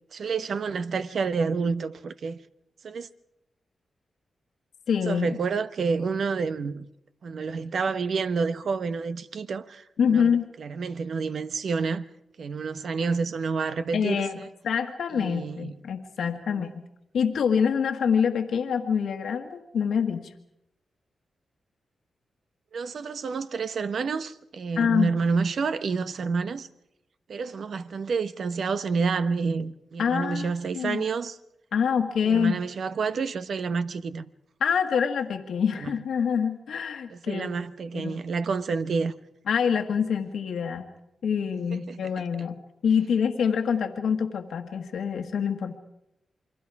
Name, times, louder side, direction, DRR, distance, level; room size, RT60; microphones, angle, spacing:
voice 1, 0.1-2.4 2.8-3.1 5.0-6.9 7.2-10.3 10.6-12.0 12.4-14.5 15.1-15.7 16.2-16.7 22.7-26.7 27.3-31.4 32.2-34.3 35.8-35.9 37.1-39.1 41.9-42.0, right 5 dB, 70° right, 1.1 m, -29 dB
voice 2, 4.9-5.4 10.0-10.5 13.9-14.4 14.6-16.7 17.1-20.3 24.7-25.1 30.0-31.0 31.7-32.6 34.6-37.5 37.9-38.2 39.5-40.8 41.2-45.7, left 7 dB, 85° left, 1.6 m, -26 dB
28.5 x 23.5 x 4.8 m
cardioid pair, 60°, 0 cm